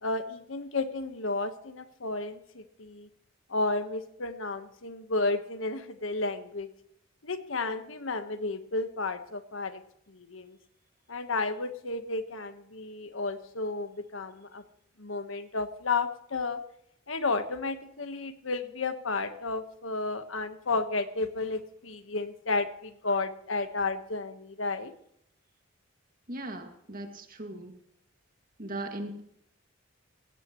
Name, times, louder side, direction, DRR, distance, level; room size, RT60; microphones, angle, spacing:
voice 1, 0.0-3.1 3.5-6.7 7.2-9.8 10.1-10.6 11.1-14.6 15.0-16.6 17.1-24.9, left 3 dB, 85° left, 9 dB, 1.3 m, -32 dB
voice 2, 26.3-27.8 28.6-29.2, right 1 dB, 45° right, 4 dB, 2.2 m, -38 dB
17.5 x 16.5 x 3.1 m, 0.73 s
head